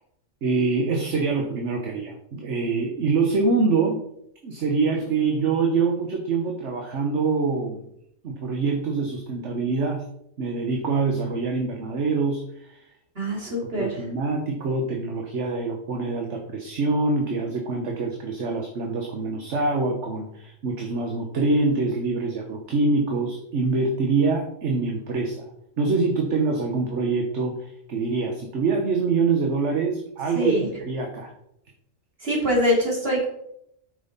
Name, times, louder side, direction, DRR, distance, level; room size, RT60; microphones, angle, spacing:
voice 1, 0.4-4.0 4.4-7.8 8.2-10.0 10.4-12.9 13.6-25.5 25.8-31.3, right 4 dB, 65° right, 1 dB, 1.4 m, -25 dB
voice 2, 13.2-13.9 30.3-30.7 32.2-33.3, equal, 50° right, -2 dB, 2.9 m, -23 dB
8.9 x 6.2 x 4.1 m, 0.75 s
omnidirectional pair, 1.3 m